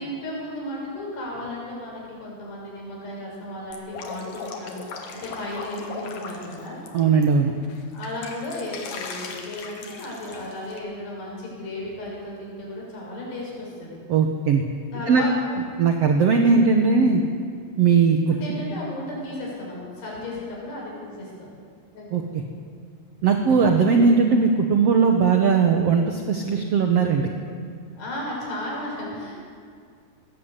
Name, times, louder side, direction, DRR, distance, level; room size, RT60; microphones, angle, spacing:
voice 1, 0.0-6.8 7.9-14.0 14.9-15.4 18.4-21.5 21.9-22.1 28.0-29.4, left 1 dB, 90° left, -3 dB, 8.8 m, -34 dB
Drip, 3.7-7.2 7.6-10.8, left 5 dB, 60° left, 3.3 m, -38 dB
voice 2, 6.9-7.5 14.1-14.6 15.1-15.2 15.8-17.2 17.8-18.4 22.1-22.4 23.2-27.3, right 5 dB, 70° right, 3 dB, 1.4 m, -19 dB
20.5 x 17.0 x 8.2 m, 2.2 s
omnidirectional pair, 4.7 m